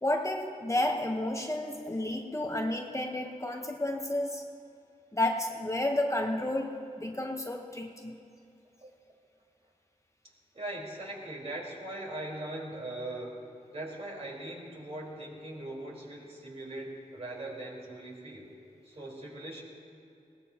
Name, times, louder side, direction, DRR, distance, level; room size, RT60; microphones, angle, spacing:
voice 1, 0.0-4.4 5.1-8.2, left 1 dB, 20° left, 2 dB, 1.1 m, -31 dB
voice 2, 10.5-13.4 13.7-18.5 18.8-19.6, right 1 dB, 50° right, -3 dB, 4.3 m, -40 dB
21.0 x 18.0 x 2.9 m, 2.6 s
wide cardioid pair, 70°, 14 cm